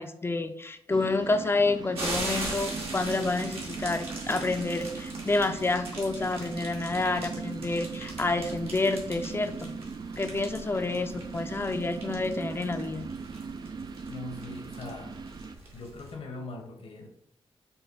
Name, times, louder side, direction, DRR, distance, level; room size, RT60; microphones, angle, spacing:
voice 1, 0.0-9.7 10.2-13.1, left 3 dB, 25° left, 8 dB, 0.5 m, -29 dB
sound 1, 0.9-15.6, right 5 dB, 45° right, 0.4 m, -39 dB
sound 2, 1.9-16.2, right 2 dB, 70° right, 1.6 m, -41 dB
voice 2, 14.1-15.2 15.7-17.1, left 2 dB, 65° left, 2 dB, 1.0 m, -41 dB
5.6 x 2.2 x 4.1 m, 0.72 s
cardioid pair, 65°, 10 cm